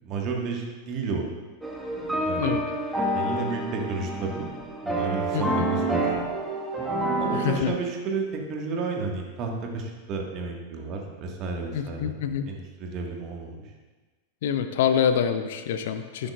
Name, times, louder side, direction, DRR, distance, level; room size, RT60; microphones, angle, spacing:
voice 1, 0.0-1.3 2.3-2.6 3.1-4.5 4.8-6.3 7.2-13.7 16.2-16.3, right 4 dB, 35° right, 1 dB, 1.7 m, -32 dB
sound 1, 1.6-7.6, right 1 dB, 5° right, 1.6 m, -28 dB
voice 2, 5.3-5.7 7.3-7.7 11.7-12.4 14.4-16.3, left 8 dB, 55° left, 9 dB, 0.6 m, -26 dB
12.5 x 10.5 x 2.5 m, 1.3 s
figure-of-eight pair, 90°, 0 cm